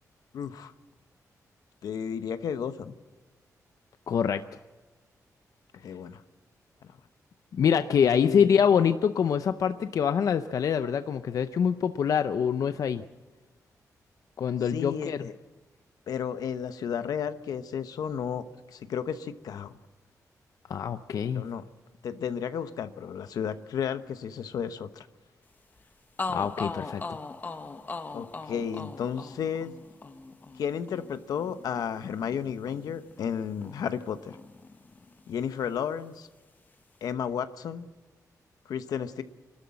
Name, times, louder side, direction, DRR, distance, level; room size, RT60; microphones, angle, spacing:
voice 1, 0.3-0.7 1.8-2.9 5.8-6.2 8.0-8.6 14.7-15.3 16.1-19.8 21.3-21.6 22.0-25.1 28.1-29.7 30.5-34.4 35.3-36.3 37.0-37.9 38.7-39.2, left 7 dB, 90° left, 11 dB, 1.0 m, -33 dB
voice 2, 4.1-4.4 7.5-13.0 14.4-15.2 20.7-21.4 26.3-27.2, left 7 dB, 65° left, 10 dB, 0.6 m, -25 dB
sound 1, 25.8-25.9 26.2-34.1 34.3-35.5, left 3 dB, 30° left, 0.9 m, -40 dB
27.5 x 13.0 x 7.6 m, 1.2 s
wide cardioid pair, 135°, 6 cm